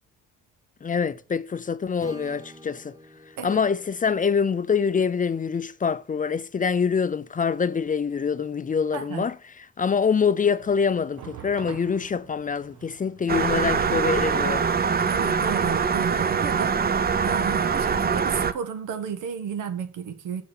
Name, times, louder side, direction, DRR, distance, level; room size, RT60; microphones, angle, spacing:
voice 1, 0.8-2.9 3.4-9.3 9.8-14.7, left 6 dB, 25° left, 0.5 m, -25 dB
Acoustic guitar / Strum, 2.0-6.0, right 2 dB, 15° right, 1.3 m, -49 dB
voice 2, 8.9-9.3 15.0-20.4, right 7 dB, 90° right, 1.5 m, -33 dB
sound 1, 10.6-16.7, right 8 dB, 75° right, 1.2 m, -45 dB
sound 2, 13.3-18.5, right 6 dB, 30° right, 0.7 m, -23 dB
6.8 x 5.9 x 5.7 m
cardioid pair, 90°, 30 cm